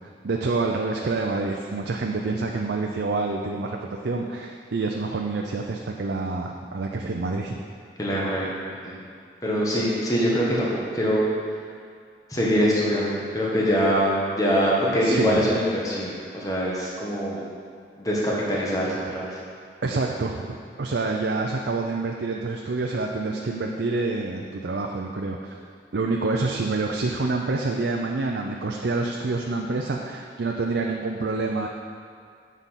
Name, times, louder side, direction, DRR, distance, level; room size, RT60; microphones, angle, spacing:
voice 1, 0.2-7.6 15.0-15.5 19.8-25.5 25.9-31.7, right 3 dB, 85° right, 1 dB, 0.5 m, -27 dB
voice 2, 8.0-8.5 8.8-8.9 9.4-11.2 12.3-17.4 18.0-19.3, equal, 20° left, -5 dB, 1.4 m, -23 dB
8.3 x 5.2 x 5.7 m, 2.3 s
head